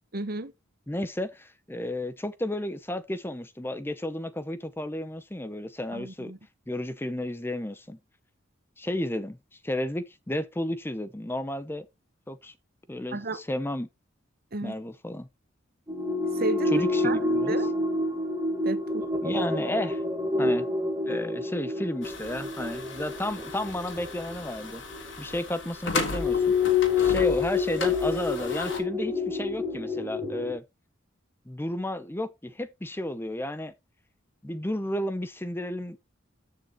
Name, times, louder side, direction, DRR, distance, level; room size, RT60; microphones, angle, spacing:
voice 1, 0.1-0.5 5.9-6.4 13.1-13.4 14.5-14.7 16.3-17.7 18.6-19.1, right 3 dB, 50° right, 1.1 m, -32 dB
voice 2, 0.9-6.3 6.7-8.0 8.8-9.4 9.6-11.9 12.3-12.5 12.9-13.9 14.6-15.3 16.7-17.6 19.2-20.0 20.4-20.7 21.0-24.8 25.2-26.6 27.0-30.6 31.5-33.7 34.4-36.0, left 1 dB, 10° left, 0.6 m, -32 dB
sound 1, 15.9-25.1 26.1-30.5, left 4 dB, 15° right, 1.8 m, -28 dB
sound 2, 22.0-28.8, left 3 dB, 65° left, 3.4 m, -36 dB
14.0 x 6.6 x 3.0 m
head